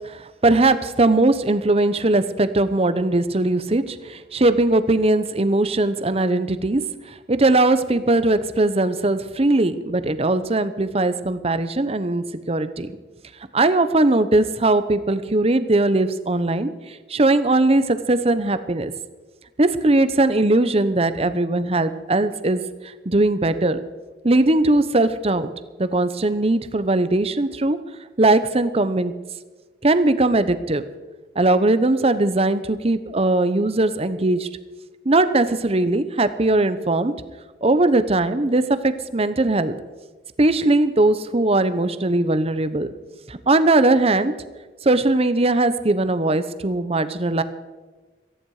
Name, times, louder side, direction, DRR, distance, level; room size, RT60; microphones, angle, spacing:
voice 1, 0.0-6.8 7.3-12.9 13.5-16.7 17.1-18.9 19.6-22.6 23.0-23.8 24.2-25.5 25.8-27.8 28.2-29.1 29.8-30.8 31.4-34.5 35.0-37.1 37.6-39.7 40.4-42.9 43.3-44.3 44.8-47.4, right 2 dB, 35° right, 12 dB, 0.9 m, -19 dB
17.5 x 14.5 x 4.9 m, 1.2 s
head